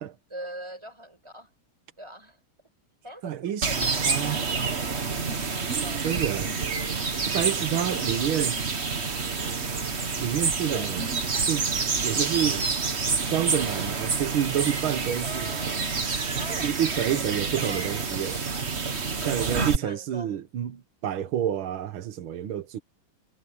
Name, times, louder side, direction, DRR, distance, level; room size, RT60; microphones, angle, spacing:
voice 1, 0.3-1.5 2.0-2.4 3.0-6.3 10.7-10.9 15.2-16.0 16.3-18.1 19.3-20.4, equal, 10° right, 7.5 m, -43 dB
voice 2, 3.2-4.4 6.0-6.5 7.3-8.6 10.2-11.1 11.4-11.7 12.0-12.7 13.3-15.5 16.6-18.4 19.2-22.8, right 10 dB, 75° right, 2.1 m, -29 dB
sound 1, 3.6-19.8, right 4 dB, 35° right, 1.6 m, -28 dB
omnidirectional pair, 2.3 m